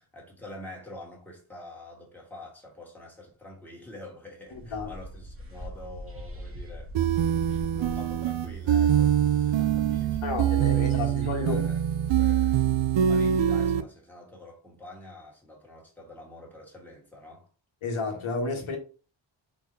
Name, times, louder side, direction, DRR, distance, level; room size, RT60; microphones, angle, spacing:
voice 1, 0.0-6.9 7.6-10.3 10.8-10.9 11.2-11.8 12.2-12.6 13.1-17.5, left 1 dB, 5° left, 1.4 m, -46 dB
voice 2, 4.5-4.9 10.2-11.6 17.8-18.8, left 3 dB, 90° left, 1.3 m, -31 dB
sound 1, 4.5-10.4, right 1 dB, 30° right, 1.1 m, -42 dB
sound 2, 6.9-13.8, right 9 dB, 70° right, 0.5 m, -24 dB
4.5 x 3.9 x 2.7 m
wide cardioid pair, 175°, 48 cm